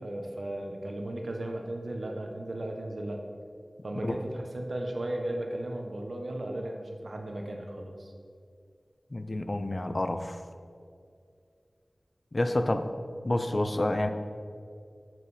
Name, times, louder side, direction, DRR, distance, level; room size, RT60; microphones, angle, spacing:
voice 1, 0.0-3.2 3.8-8.1, right 1 dB, 75° right, 2 dB, 1.1 m, -35 dB
voice 2, 9.1-10.4 12.3-12.8 13.2-14.1, left 1 dB, 40° left, 8 dB, 0.6 m, -28 dB
7.9 x 7.6 x 4.9 m, 2.3 s
wide cardioid pair, 70°, 0 cm